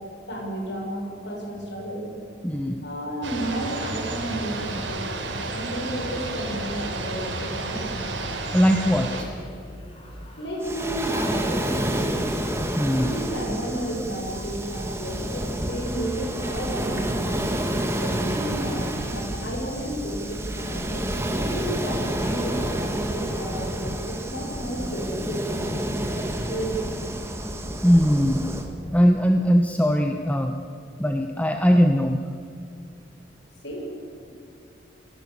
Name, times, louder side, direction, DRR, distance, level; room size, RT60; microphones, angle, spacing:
voice 1, 0.0-2.1 2.8-8.1 10.4-12.1 13.0-17.5 18.0-25.7 26.0-26.9 33.6-33.9, right 1 dB, 65° left, 0 dB, 6.4 m, -32 dB
voice 2, 2.4-2.8 8.5-9.3 12.7-13.1 27.8-28.5 28.9-30.6 31.0-32.2, equal, 5° left, 4 dB, 1.0 m, -20 dB
sound 1, 3.2-9.2, right 2 dB, 75° right, 4.2 m, -31 dB
sound 2, 6.0-21.9, equal, 30° left, 4.1 m, -43 dB
Waves surf, 10.6-28.7, right 1 dB, 15° right, 2.2 m, -29 dB
29.0 x 18.5 x 8.3 m, 2.5 s
head